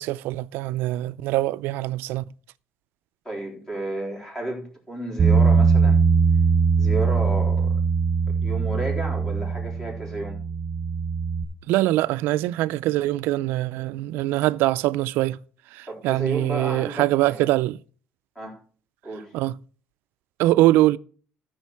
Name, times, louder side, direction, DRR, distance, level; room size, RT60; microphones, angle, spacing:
voice 1, 0.0-2.2 11.7-15.4 16.0-17.8 19.3-19.5 20.4-21.0, right 16 dB, 85° right, 0.4 m, -23 dB
voice 2, 3.2-6.0 6.8-7.8 8.3-10.4 15.9-17.5 18.4-18.6 19.0-19.4, right 2 dB, 10° left, 3.7 m, -32 dB
Bass guitar, 5.2-11.4, right 5 dB, 25° right, 1.6 m, -21 dB
13.5 x 6.4 x 4.6 m
cardioid pair, 150°, 4 cm